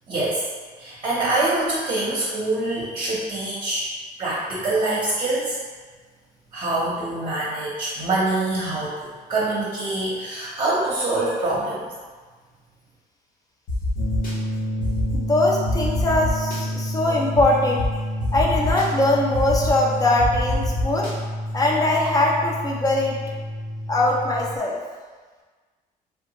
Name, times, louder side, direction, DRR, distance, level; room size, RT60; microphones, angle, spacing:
voice 1, 0.1-0.4 0.8-3.9 4.2-5.6 6.5-11.9, right 2 dB, 35° right, -7 dB, 0.8 m, -25 dB
sound 1, 13.7-14.3 14.8-15.2 15.7-16.6 17.3-17.4 17.8-17.9 18.2-18.8 19.3-19.7 20.2-21.1, left 1 dB, 55° left, 1.0 m, -25 dB
sound 2, 14.0-24.6, equal, 75° left, 0.5 m, -29 dB
voice 2, 15.1-17.8 18.3-21.1 21.5-23.2 23.9-24.8, left 2 dB, 20° left, -2 dB, 0.6 m, -21 dB
3.3 x 2.2 x 2.8 m, 1.4 s
cardioid pair, 110°, 17 cm